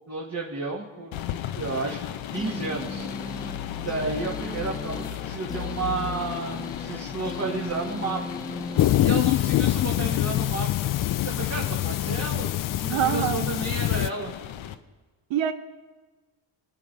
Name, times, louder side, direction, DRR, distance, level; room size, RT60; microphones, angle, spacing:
voice 1, 0.1-1.2 1.5-3.1 3.8-8.2 9.0-10.7 11.2-12.5 12.8-14.3, right 3 dB, 35° right, 2.3 m, -32 dB
sound 1, 1.1-14.8, left 11 dB, 70° left, 1.0 m, -36 dB
sound 2, 2.4-9.8, left 2 dB, 10° left, 0.7 m, -37 dB
sound 3, 8.8-14.1, left 14 dB, 45° left, 0.4 m, -24 dB
voice 2, 12.9-13.5 15.3-15.5, right 10 dB, 70° right, 0.9 m, -25 dB
26.5 x 9.0 x 4.1 m
cardioid pair, 80°, 47 cm